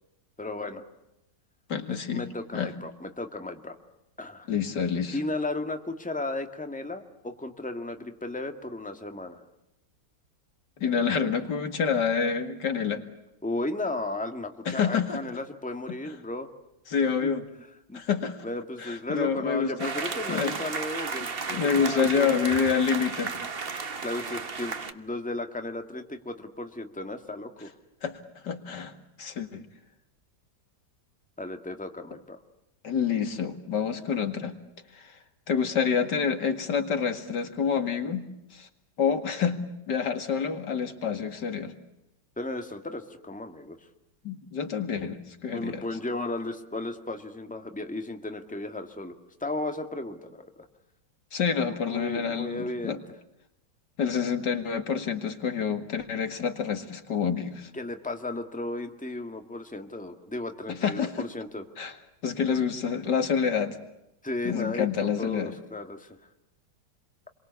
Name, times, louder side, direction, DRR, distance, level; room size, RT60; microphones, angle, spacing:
voice 1, 0.4-0.8 1.9-3.8 4.2-4.5 5.1-9.4 13.4-16.5 17.2-17.3 17.9-18.0 18.4-21.6 22.1-22.5 24.0-27.7 31.4-32.4 42.4-43.8 45.5-49.2 49.4-50.5 51.6-53.0 57.7-61.6 64.2-66.2, left 2 dB, 5° left, 6 dB, 2.0 m, -35 dB
voice 2, 1.7-2.3 2.5-2.7 4.5-5.2 10.8-13.0 14.7-15.2 15.9-16.0 16.9-17.4 17.9-18.4 18.8-19.9 20.3-20.5 21.5-23.3 28.0-28.9 29.2-29.6 32.8-34.5 34.9-35.2 35.5-38.7 39.0-41.7 44.2-45.8 51.3-53.0 54.0-57.7 60.7-61.3 61.8-62.0 62.2-63.8 64.4-65.6, left 6 dB, 75° left, 8 dB, 2.6 m, -28 dB
sound 1, 19.8-24.9, right 5 dB, 35° right, 1.4 m, -33 dB
29.5 x 23.5 x 8.3 m, 0.87 s
omnidirectional pair, 1.9 m